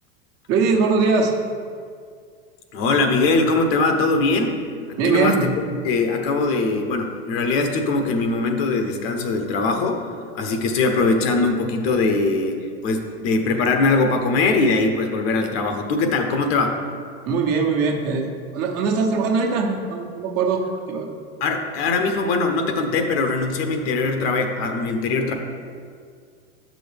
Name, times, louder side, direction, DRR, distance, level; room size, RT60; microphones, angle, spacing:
voice 1, 0.5-1.4 5.0-5.6 17.2-21.1, right 4 dB, 45° right, 1 dB, 1.1 m, -21 dB
voice 2, 2.7-4.5 4.9-5.3 5.8-10.0 10.3-12.6 12.8-16.8 21.4-25.3, left 3 dB, 65° left, 4 dB, 1.1 m, -21 dB
8.8 x 6.2 x 3.5 m, 2.1 s
supercardioid pair, 130°, 32 cm